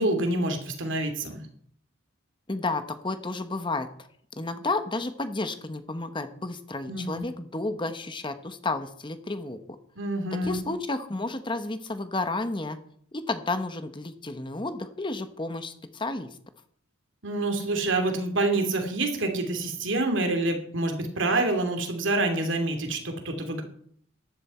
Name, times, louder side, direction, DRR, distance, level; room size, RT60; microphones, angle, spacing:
voice 1, 0.0-1.4 6.9-7.3 10.0-10.7 17.2-23.6, right 2 dB, 65° right, 4 dB, 2.9 m, -27 dB
voice 2, 2.5-4.1 4.4-9.6 10.3-12.8 13.1-16.3, left 2 dB, 25° left, 9 dB, 1.0 m, -31 dB
14.5 x 11.0 x 4.4 m, 0.62 s
head